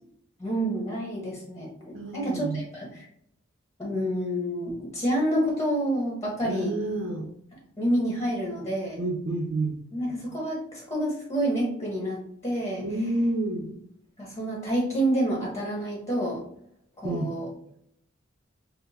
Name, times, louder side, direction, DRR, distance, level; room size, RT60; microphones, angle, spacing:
voice 1, 0.4-1.7 2.1-3.1 3.8-6.7 7.8-9.0 9.9-12.8 14.2-16.4 17.0-17.5, right 1 dB, 15° left, -3 dB, 1.1 m, -28 dB
voice 2, 1.9-2.6 6.4-7.3 9.0-9.8 12.8-13.8 17.0-17.3, right 2 dB, 70° right, 1 dB, 0.7 m, -29 dB
6.0 x 2.1 x 2.7 m, 0.70 s
head